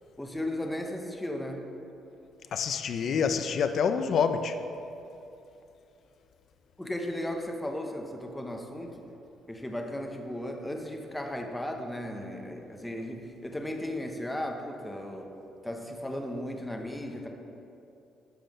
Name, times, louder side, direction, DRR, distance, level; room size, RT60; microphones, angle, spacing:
voice 1, 0.2-1.6 6.8-8.9 9.5-15.3 15.6-17.3, left 1 dB, 5° left, 0.7 m, -35 dB
voice 2, 2.5-4.6, left 6 dB, 45° left, 0.5 m, -27 dB
11.5 x 5.4 x 5.3 m
cardioid pair, 165°, 0 cm